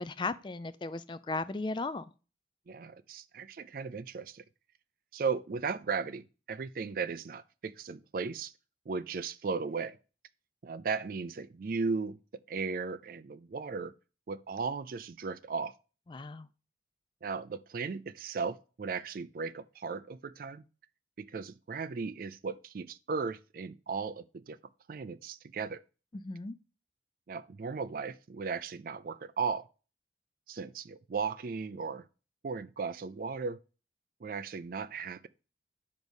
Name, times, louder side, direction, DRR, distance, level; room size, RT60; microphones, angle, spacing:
voice 1, 0.0-2.1 16.1-16.5 26.2-26.5, left 3 dB, 25° left, 0.3 m, -36 dB
voice 2, 2.7-4.4 5.1-8.5 8.9-10.0 10.6-12.2 12.5-13.9 14.3-15.7 17.2-20.6 21.2-24.6 24.9-25.8 27.3-29.7 30.5-32.0 32.4-33.6 34.2-35.3, right 5 dB, 50° right, 0.4 m, -36 dB
5.3 x 5.2 x 6.2 m
head